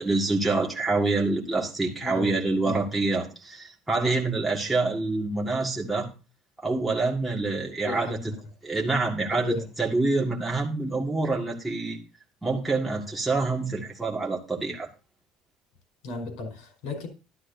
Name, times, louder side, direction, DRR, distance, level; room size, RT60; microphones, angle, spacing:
voice 1, 0.0-6.1 6.6-8.2 8.6-12.0 12.4-14.9, right 3 dB, 5° right, 1.8 m, -26 dB
voice 2, 2.0-2.3 2.6-2.8 7.8-8.4 9.3-9.7 16.0-17.1, left 3 dB, 75° left, 4.6 m, -35 dB
12.0 x 12.0 x 2.7 m
cardioid pair, 145°, 0 cm